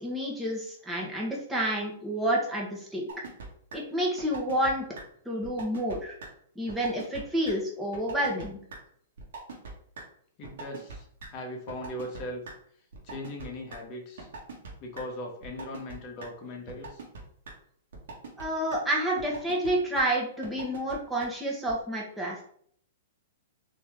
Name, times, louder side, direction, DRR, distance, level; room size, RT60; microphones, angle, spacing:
voice 1, 0.0-3.1 3.7-4.9 5.2-6.1 6.5-8.6 18.4-22.4, right 1 dB, 5° right, -4 dB, 1.3 m, -29 dB
sound 1, 3.1-3.5 3.7-3.8 4.2-4.7 4.9-5.0 5.4-6.0 6.2-6.3 6.7-7.2 7.4-7.5 7.9-8.4 8.7-8.8 9.2-9.7 10.0-10.1 10.4-11.3 11.7-12.5 12.9-13.8 14.2-14.7 14.9-15.0 15.4-15.9 16.2-16.3 16.7-17.2 17.4-17.5 17.9-18.4 18.7-18.8 19.2-19.7 19.9-20.0 20.4-20.9 21.2-21.3 21.7-21.8, right 4 dB, 75° right, 1.6 m, -41 dB
voice 2, 10.4-12.4 13.0-14.3 14.8-17.0, left 1 dB, 40° left, 1 dB, 1.3 m, -39 dB
4.4 x 2.9 x 3.6 m, 0.62 s
hypercardioid pair, 130°, 0 cm